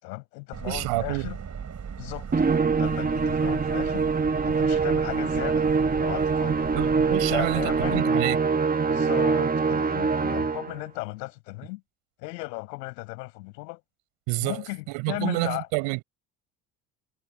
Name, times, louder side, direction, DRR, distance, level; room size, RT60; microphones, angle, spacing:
voice 1, 0.0-1.4 2.0-2.3 2.8-4.1 4.4-5.7 6.0-6.7 7.1-8.1 8.8-11.8 12.2-13.8 14.4-15.7, left 24 dB, 85° left, 5.2 m, -36 dB
Subway metro underground, 0.5-8.0, right 7 dB, 35° right, 4.3 m, -37 dB
voice 2, 0.7-1.3 6.7-8.4 14.3-14.6 14.9-16.0, right 28 dB, 75° right, 5.5 m, -28 dB
Musical instrument, 2.3-10.8, right 4 dB, 20° right, 1.5 m, -24 dB
hypercardioid pair, 75°, 47 cm